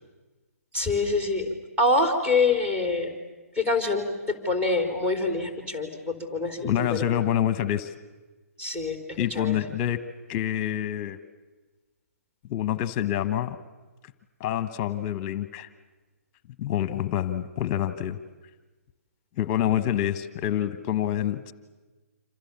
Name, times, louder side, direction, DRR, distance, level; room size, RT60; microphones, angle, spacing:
voice 1, 0.7-1.5 1.8-3.1 3.6-7.2 8.6-9.0 9.4-9.6, left 3 dB, 15° right, 3 dB, 4.2 m, -25 dB
voice 2, 6.6-7.9 9.1-10.0 10.3-11.2 12.5-13.6 14.4-15.7 16.6-18.2 19.4-21.5, left 11 dB, 30° left, 13 dB, 1.2 m, -27 dB
27.5 x 26.5 x 7.2 m, 1.2 s
figure-of-eight pair, 130°, 8 cm